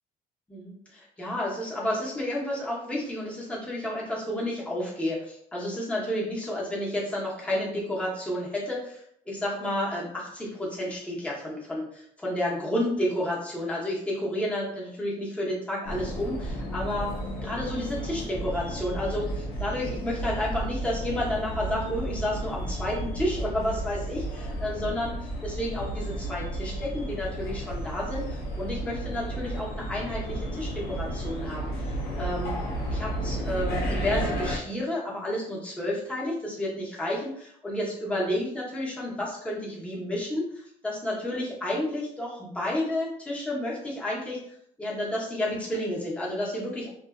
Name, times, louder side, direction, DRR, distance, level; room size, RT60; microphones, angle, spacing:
voice 1, 0.5-17.1 17.4-25.1 25.4-32.6 32.9-44.4 44.8-46.9, left 1 dB, 5° left, -5 dB, 0.8 m, -31 dB
sound 1, 15.8-34.6, right 1 dB, 65° left, 0.7 m, -33 dB
2.5 x 2.4 x 2.2 m, 0.69 s
cardioid pair, 110°, 17 cm